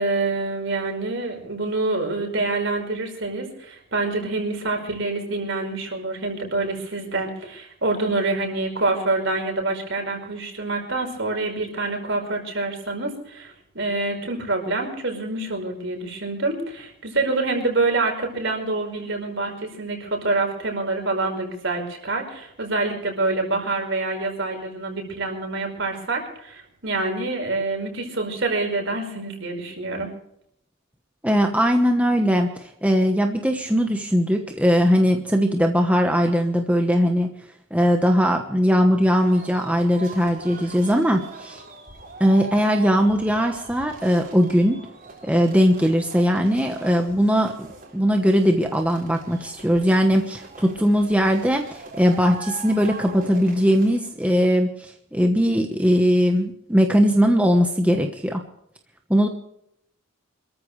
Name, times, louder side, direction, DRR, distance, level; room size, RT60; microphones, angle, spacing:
voice 1, 0.0-30.1, right 2 dB, 60° right, 3 dB, 5.1 m, -26 dB
voice 2, 31.2-37.3 37.7-41.6 42.2-44.8 45.2-47.7 47.9-58.4 59.1-59.3, equal, 5° right, 3 dB, 1.1 m, -20 dB
sound 1, 39.2-54.1, right 3 dB, 40° right, 4.6 m, -41 dB
26.5 x 14.0 x 3.3 m, 0.74 s
head